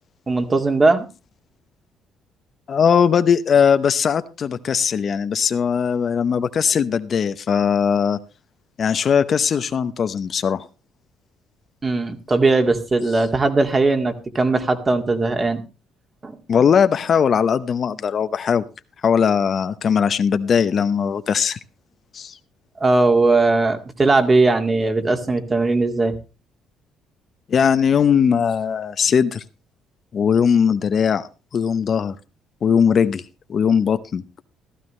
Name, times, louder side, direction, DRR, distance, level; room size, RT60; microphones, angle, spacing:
voice 1, 0.3-1.1 11.8-15.6 16.2-16.4 22.8-26.2, right 3 dB, 25° right, 6 dB, 2.1 m, -19 dB
voice 2, 2.7-8.2 8.8-10.7 16.5-18.6 19.0-21.6 22.1-22.4 27.5-29.4 30.1-32.2 32.6-33.2 33.5-34.2, left 7 dB, 50° left, 11 dB, 0.7 m, -19 dB
15.0 x 12.5 x 3.2 m, 0.30 s
cardioid pair, 85°, 0 cm